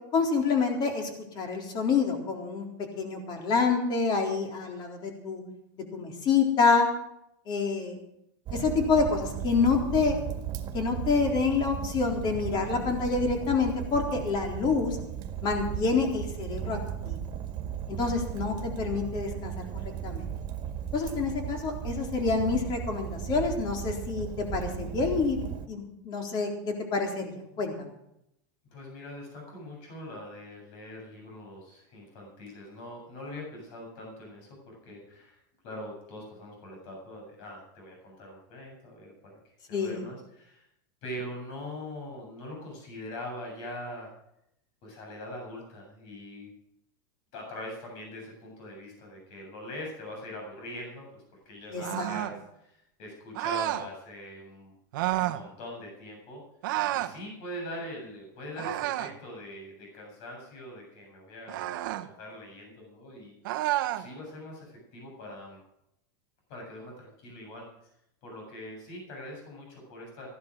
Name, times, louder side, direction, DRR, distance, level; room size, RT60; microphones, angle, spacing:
voice 1, 0.1-1.1 1.3-2.7 3.0-5.4 5.8-6.9 7.5-8.0 8.5-10.2 10.7-15.0 15.4-16.8 17.0-17.2 17.9-20.3 20.9-25.4 25.7-27.9 39.7-40.0 51.7-52.1, left 4 dB, 40° left, 3 dB, 3.9 m, -27 dB
Fire, 8.5-25.7, right 9 dB, 40° right, 1.8 m, -36 dB
voice 2, 28.7-40.7 41.0-44.1 44.8-46.5 47.3-54.7 55.2-56.4 56.9-63.6 63.9-65.6 66.5-67.7 68.2-70.3, left 1 dB, 60° left, 0 dB, 7.8 m, -42 dB
sound 1, 51.8-52.4 53.3-53.9 54.9-55.4 56.6-57.2 58.6-59.2 61.5-62.1 63.4-64.1, right 15 dB, 75° right, 1.0 m, -30 dB
15.0 x 12.0 x 6.3 m, 0.79 s
supercardioid pair, 135°, 11 cm